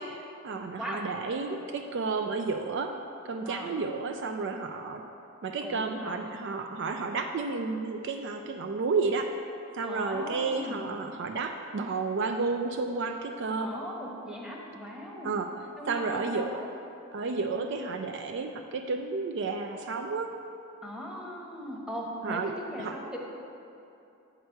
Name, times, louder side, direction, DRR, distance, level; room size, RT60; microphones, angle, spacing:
voice 1, 0.0-3.0 3.2-5.0 5.4-9.3 9.7-13.7 15.2-15.5 15.9-16.6 17.1-20.3 22.2-22.5 22.8-22.9, right 4 dB, 55° right, 5 dB, 0.4 m, -31 dB
voice 2, 5.6-6.4 9.8-10.9 13.6-15.3 15.8-16.7 20.8-23.2, equal, 5° right, -3 dB, 1.0 m, -39 dB
7.7 x 6.6 x 4.5 m, 2.7 s
head